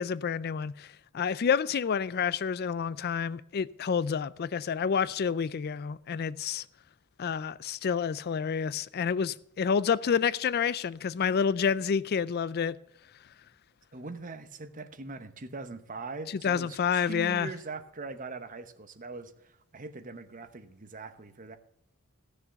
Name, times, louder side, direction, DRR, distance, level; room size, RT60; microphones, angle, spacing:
voice 1, 0.0-6.6 7.2-12.8 16.4-17.5, left 6 dB, 45° left, 0.4 m, -29 dB
voice 2, 13.9-21.6, right 3 dB, 35° right, 1.0 m, -41 dB
15.0 x 6.8 x 7.0 m
head